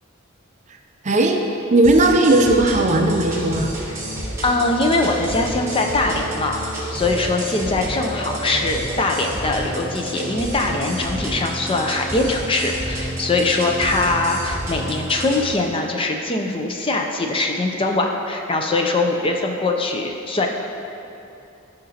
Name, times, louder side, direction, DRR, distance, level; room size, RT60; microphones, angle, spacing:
voice 1, 1.0-1.4 1.7-3.7, right 2 dB, 35° right, 3 dB, 0.6 m, -16 dB
sound 1, 1.8-15.5, right 1 dB, 15° right, 1.5 m, -30 dB
voice 2, 4.4-20.5, left 2 dB, 25° left, 2 dB, 0.5 m, -22 dB
12.5 x 5.1 x 2.9 m, 2.8 s
head